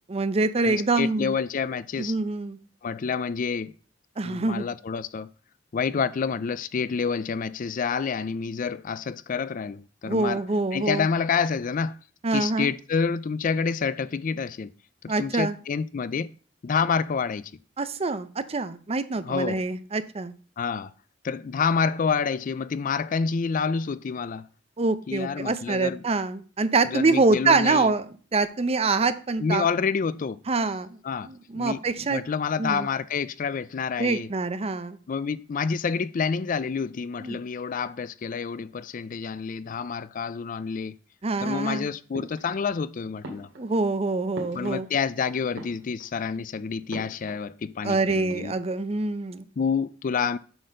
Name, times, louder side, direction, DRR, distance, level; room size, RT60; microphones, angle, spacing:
voice 1, 0.1-1.3 2.0-2.6 4.2-4.7 10.1-11.1 12.2-12.7 15.1-15.6 17.8-20.3 24.8-28.1 28.3-29.7 30.5-30.9 31.2-32.2 32.6-32.9 34.0-35.0 37.2-37.4 41.2-41.9 43.6-44.9 47.8-49.5, right 3 dB, 35° right, 0.6 m, -25 dB
voice 2, 0.6-2.1 2.8-3.7 4.2-5.3 5.7-10.4 10.7-12.0 12.3-14.7 15.2-16.3 16.6-17.5 19.2-19.6 20.6-20.9 21.2-24.5 25.1-26.0 26.8-27.9 29.4-30.4 31.0-31.3 31.5-34.3 35.1-41.0 41.4-43.5 44.5-48.5 49.6-50.4, left 5 dB, 45° left, 0.4 m, -28 dB
sound 1, 42.1-42.9 43.2-45.1 45.4-46.3 46.9-47.5 47.8-47.9 48.1-48.9, right 1 dB, 75° right, 2.5 m, -43 dB
7.9 x 4.2 x 6.4 m
head